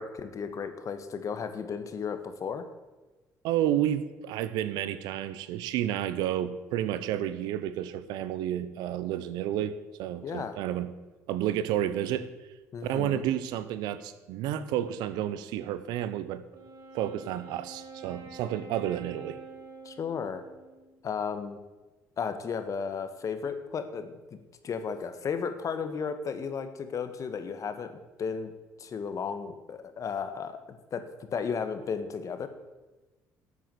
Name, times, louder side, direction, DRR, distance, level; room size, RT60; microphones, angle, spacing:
voice 1, 0.0-2.6 10.2-10.6 12.7-13.2 19.8-20.4 21.0-21.6 22.2-24.4 24.6-27.9 28.2-28.5 28.8-30.6 30.9-32.5, left 6 dB, 50° left, 9 dB, 1.6 m, -34 dB
voice 2, 3.4-10.9 11.3-12.3 12.8-16.4 16.9-19.4, right 11 dB, 75° right, 14 dB, 0.9 m, -31 dB
Wind instrument woodwind instrument, 16.5-21.0, right 3 dB, 55° right, 3.8 m, -47 dB
12.5 x 8.4 x 7.9 m, 1.2 s
hypercardioid pair, 65°, 7 cm